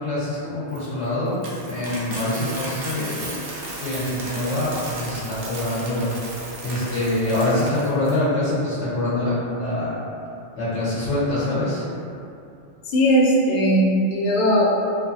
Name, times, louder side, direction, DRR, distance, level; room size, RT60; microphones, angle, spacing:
voice 1, 0.0-6.1 6.6-10.0 10.5-11.8, left 1 dB, 80° left, -10 dB, 0.9 m, -25 dB
Coin (dropping), 0.7-8.1, right 2 dB, 65° right, 0.7 m, -35 dB
voice 2, 12.8-14.8, equal, 55° left, -4 dB, 0.6 m, -18 dB
2.7 x 2.3 x 2.5 m, 2.6 s
omnidirectional pair, 1.2 m